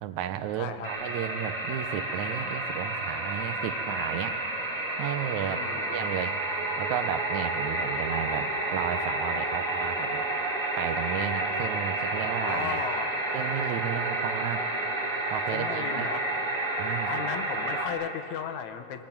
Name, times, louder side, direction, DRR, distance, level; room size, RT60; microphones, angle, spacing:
voice 1, 0.0-4.4 5.0-6.4 6.8-10.2 10.8-12.8 13.3-14.7 15.3-16.1 16.8-17.1, right 10 dB, 80° right, 10 dB, 2.2 m, -33 dB
voice 2, 0.6-0.9 5.5-6.1 12.4-13.2 15.5-16.2 17.1-19.0, left 8 dB, 75° left, 8 dB, 2.4 m, -35 dB
sound 1, 0.8-17.9, right 2 dB, 25° right, 2.8 m, -30 dB
27.0 x 22.0 x 6.0 m, 2.7 s
omnidirectional pair, 3.3 m